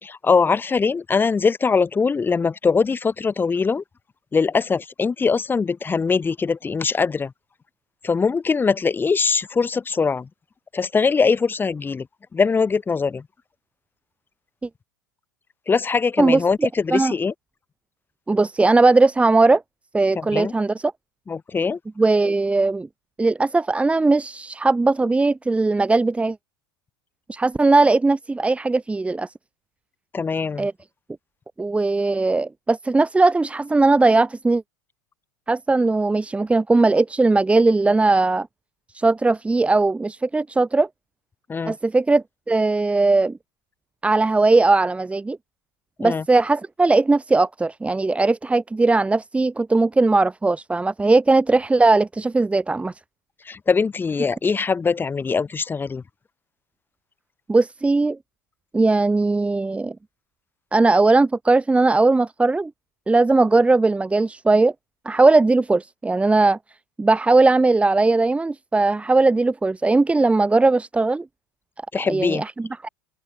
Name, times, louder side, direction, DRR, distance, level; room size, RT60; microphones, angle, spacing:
voice 1, 0.0-3.8 4.3-7.3 8.0-10.3 10.7-12.1 12.3-13.2 15.7-17.3 20.2-20.5 21.3-21.8 30.1-30.7 41.5-41.7 46.0-46.2 53.5-56.0 71.9-72.4, left 5 dB, 20° left, 2.4 m, -22 dB
voice 2, 16.2-17.1 18.3-19.6 19.9-20.9 22.0-22.9 23.2-26.4 27.3-29.3 30.6-30.7 31.6-34.6 35.5-38.5 38.9-40.9 41.7-43.4 44.0-45.4 46.0-52.9 57.5-58.2 58.7-60.0 60.7-62.7 63.1-64.7 65.1-66.6 67.0-71.3 72.1-72.9, right 3 dB, 10° right, 2.1 m, -19 dB
open air
hypercardioid pair, 85°, 10 cm